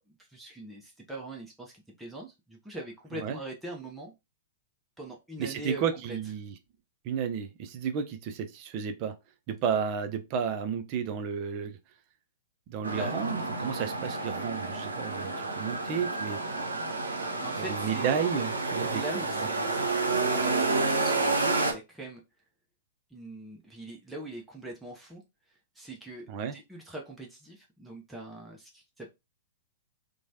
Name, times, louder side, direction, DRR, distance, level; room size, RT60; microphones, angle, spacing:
voice 1, 0.1-4.1 5.0-6.2 13.0-13.2 17.4-18.2 18.8-22.2 23.1-25.2 25.8-29.1, right 1 dB, 5° right, 0.7 m, -42 dB
voice 2, 5.4-6.5 7.0-9.1 9.5-11.8 12.7-16.4 17.7-19.0 26.3-26.6, right 7 dB, 35° right, 0.5 m, -32 dB
sound 1, 12.8-21.7, right 3 dB, 75° right, 0.7 m, -30 dB
3.0 x 2.2 x 2.6 m
figure-of-eight pair, 105°, 0 cm